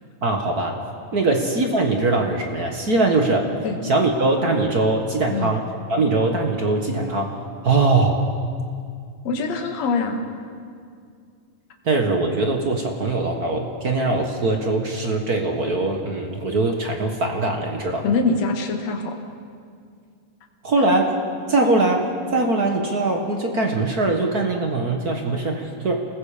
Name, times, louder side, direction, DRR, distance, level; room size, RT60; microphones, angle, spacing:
voice 1, 0.2-0.8 1.1-3.5 3.8-5.6 5.9-8.2 11.8-18.0 20.6-21.1 21.5-22.0 22.3-26.0, right 2 dB, 45° right, 3 dB, 1.3 m, -21 dB
voice 2, 9.2-10.2 18.0-19.2, left 4 dB, 55° left, 3 dB, 2.7 m, -23 dB
29.0 x 20.0 x 5.1 m, 2.2 s
omnidirectional pair, 3.9 m